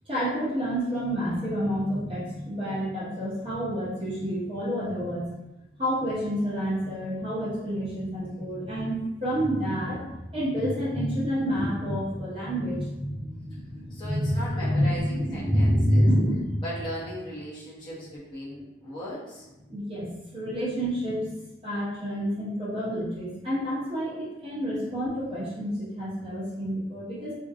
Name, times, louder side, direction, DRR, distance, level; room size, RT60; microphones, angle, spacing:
voice 1, 0.1-5.3 5.8-16.6 19.7-21.2 21.6-27.3, equal, 30° right, -9 dB, 0.9 m, -28 dB
voice 2, 13.9-16.1 16.6-19.5, equal, 25° left, -9 dB, 0.8 m, -37 dB
2.6 x 2.2 x 2.6 m, 0.98 s
head